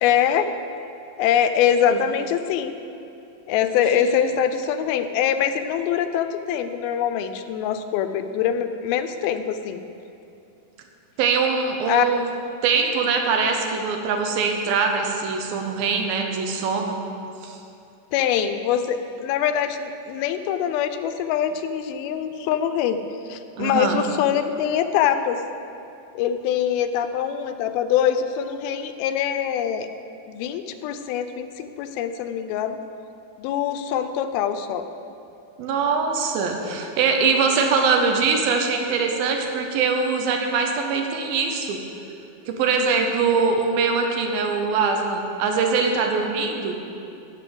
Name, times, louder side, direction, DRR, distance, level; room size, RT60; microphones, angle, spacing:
voice 1, 0.0-0.5 1.2-2.7 3.5-9.8 11.9-12.1 18.1-23.0 23.3-25.4 26.2-29.9 30.3-32.8 33.4-34.8, left 9 dB, 90° left, 9 dB, 2.5 m, -23 dB
voice 2, 3.9-4.3 11.2-12.3 12.6-17.0 17.4-17.6 23.6-24.0 35.6-41.8 42.5-46.9, right 5 dB, 80° right, 3 dB, 2.7 m, -22 dB
12.5 x 5.0 x 7.7 m, 2.7 s
omnidirectional pair, 4.2 m